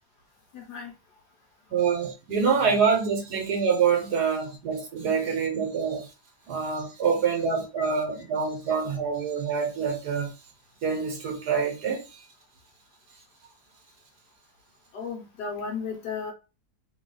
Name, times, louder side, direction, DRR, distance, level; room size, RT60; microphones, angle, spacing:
voice 1, 0.5-0.9 14.9-16.3, left 5 dB, 65° left, 1.4 m, -34 dB
voice 2, 1.7-6.1 6.5-10.3 10.8-12.0, right 6 dB, 65° right, 1.4 m, -26 dB
3.5 x 2.3 x 3.8 m
omnidirectional pair, 2.0 m